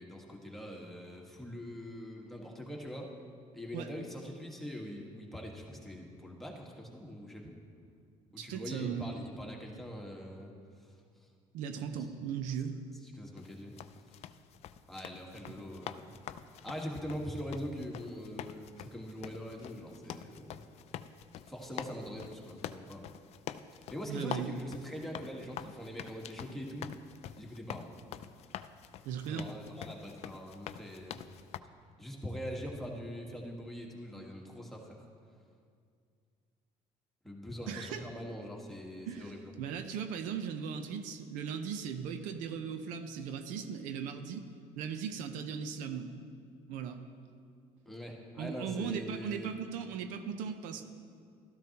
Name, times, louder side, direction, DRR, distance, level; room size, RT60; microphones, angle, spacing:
voice 1, 0.0-3.1 3.5-7.5 8.3-10.5 13.1-13.7 14.9-16.1 16.6-20.6 21.5-23.0 23.7-26.9 27.4-28.0 29.3-31.2 32.0-35.0 37.2-39.5 47.8-49.5, equal, ahead, -1 dB, 1.6 m, -43 dB
voice 2, 8.4-9.1 11.5-12.7 15.5-15.6 24.1-24.6 29.0-29.5 37.7-38.0 39.1-44.5 44.8-46.3 46.7-47.0 48.3-50.8, right 7 dB, 85° right, 8 dB, 0.7 m, -38 dB
sound 1, 13.4-31.6, left 10 dB, 55° left, 0.4 m, -46 dB
13.0 x 12.5 x 2.9 m, 2.2 s
cardioid pair, 115°, 13 cm